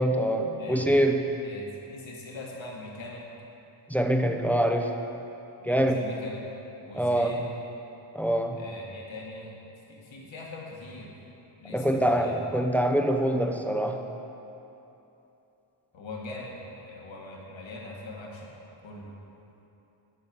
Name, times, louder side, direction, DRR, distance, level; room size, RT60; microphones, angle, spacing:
voice 1, 0.0-1.2 3.9-4.9 5.6-6.0 6.9-7.4 8.1-8.6 11.7-14.0, right 1 dB, 5° left, 4 dB, 0.5 m, -24 dB
voice 2, 0.6-1.0 1.4-3.3 5.6-6.5 6.8-7.5 8.5-9.6 9.9-11.2 11.6-12.4 15.9-18.5 18.8-19.1, left 2 dB, 65° left, -2 dB, 1.9 m, -42 dB
11.0 x 7.4 x 5.3 m, 2.9 s
wide cardioid pair, 130°, 49 cm